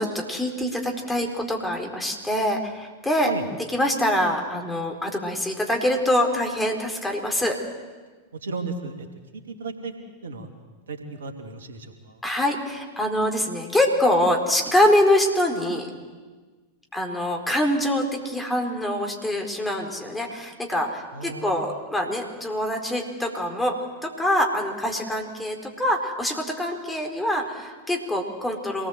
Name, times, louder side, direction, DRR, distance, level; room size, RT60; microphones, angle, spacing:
voice 1, 0.0-3.3 3.7-7.6 12.2-15.9 16.9-28.9, left 1 dB, 5° left, 2 dB, 4.5 m, -24 dB
voice 2, 8.3-9.1 9.5-9.9 10.2-10.5 10.9-12.2 21.1-21.7, right 4 dB, 65° right, 5 dB, 2.8 m, -34 dB
26.5 x 19.5 x 8.2 m, 1.4 s
figure-of-eight pair, 90°, 0 cm